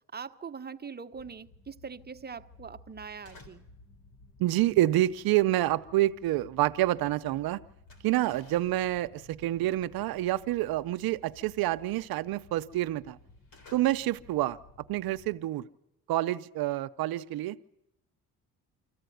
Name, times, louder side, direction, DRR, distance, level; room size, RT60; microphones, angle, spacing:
voice 1, 0.1-3.6, right 6 dB, 25° right, 1.0 m, -42 dB
sound 1, 1.1-15.4, left 3 dB, 35° left, 1.5 m, -57 dB
sound 2, 3.0-3.8 4.1-7.1 7.3-14.5, left 3 dB, 65° left, 3.6 m, -60 dB
voice 2, 4.4-7.6 8.0-13.2 13.7-14.6 14.9-15.7 16.1-17.6, right 15 dB, 75° right, 0.7 m, -28 dB
25.5 x 14.5 x 9.3 m
cardioid pair, 85°, 37 cm